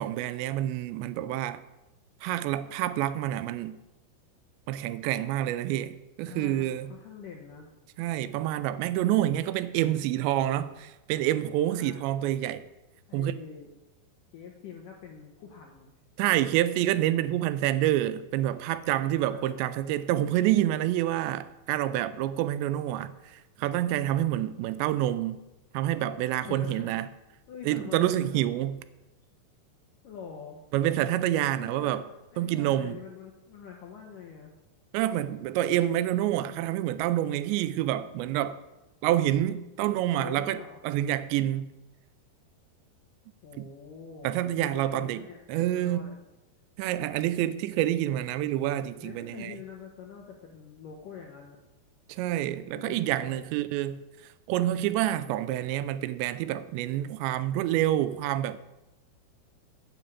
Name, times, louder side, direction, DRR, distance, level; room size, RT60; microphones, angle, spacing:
voice 1, 0.0-1.6 2.2-3.8 4.7-6.9 8.0-12.6 13.1-13.3 16.2-25.4 25.7-27.1 27.7-28.8 30.7-32.0 32.4-33.0 34.9-38.6 39.0-40.6 40.8-41.7 43.6-43.7 44.2-46.1 46.8-49.5 52.1-54.0 54.5-58.6, right 13 dB, 85° right, 2.8 m, -28 dB
voice 2, 6.3-7.7 11.7-12.1 13.1-13.7 14.3-15.9 19.2-19.7 26.4-26.9 27.5-28.3 30.0-30.6 31.4-34.5 39.8-40.8 43.4-44.3 44.6-46.2 48.6-51.6 52.8-53.5, left 6 dB, 75° left, 2.0 m, -45 dB
8.9 x 6.5 x 8.2 m
omnidirectional pair, 5.1 m